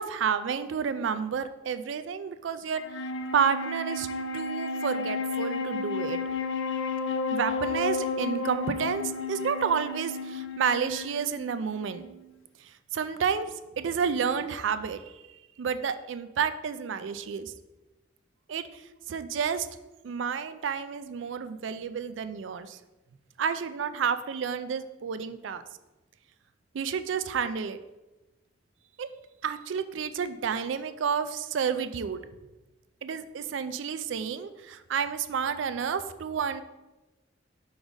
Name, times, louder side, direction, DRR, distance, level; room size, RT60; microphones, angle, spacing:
voice 1, 0.0-2.8 3.3-4.1 4.3-6.2 7.3-12.1 12.6-13.5 13.8-15.2 15.6-17.5 18.5-18.8 19.1-19.7 20.0-22.8 23.4-25.6 26.7-27.8 29.0-29.1 29.4-32.2 33.0-36.6, right 6 dB, 85° right, 11 dB, 0.4 m, -30 dB
Wind instrument woodwind instrument, 2.8-12.3, left 3 dB, 90° left, 0.4 m, -32 dB
4.7 x 3.9 x 5.1 m, 1.1 s
head